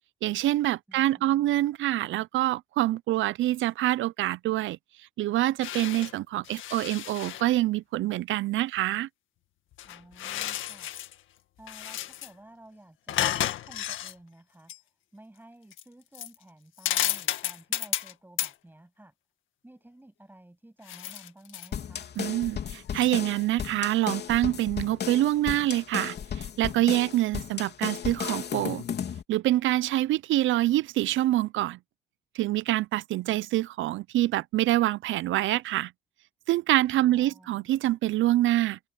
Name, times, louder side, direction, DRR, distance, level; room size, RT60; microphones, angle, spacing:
voice 1, 0.2-4.8 5.2-9.1 22.2-26.1 26.6-28.8 29.3-31.8 32.4-35.9 36.5-38.8, right 15 dB, 75° right, 0.5 m, -26 dB
voice 2, 0.9-1.7 9.8-10.9 11.6-19.1 19.6-22.1 36.9-37.7, right 1 dB, 10° right, 7.8 m, -53 dB
sound 1, 5.6-6.1 6.4-7.5 9.7-11.2 11.6-12.3 13.1-14.1 14.7-14.8 15.7-15.8 16.2-16.4 16.8-18.1 18.4-18.5 20.9-21.7 22.2-22.3 23.0-23.1, left 12 dB, 80° left, 1.9 m, -32 dB
sound 2, 21.7-29.2, left 8 dB, 60° left, 3.3 m, -34 dB
cardioid pair, 90°, 20 cm